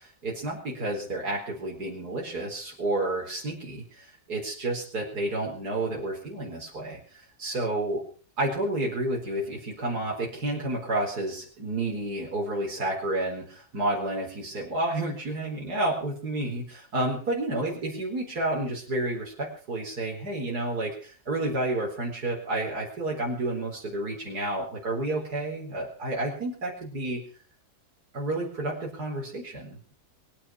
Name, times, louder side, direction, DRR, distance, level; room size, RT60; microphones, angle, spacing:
voice 1, 0.0-7.0 7.4-8.0 8.4-27.2 28.1-30.0, right 2 dB, 85° right, -2 dB, 4.8 m, -30 dB
22.5 x 9.9 x 6.0 m, 0.42 s
omnidirectional pair, 1.6 m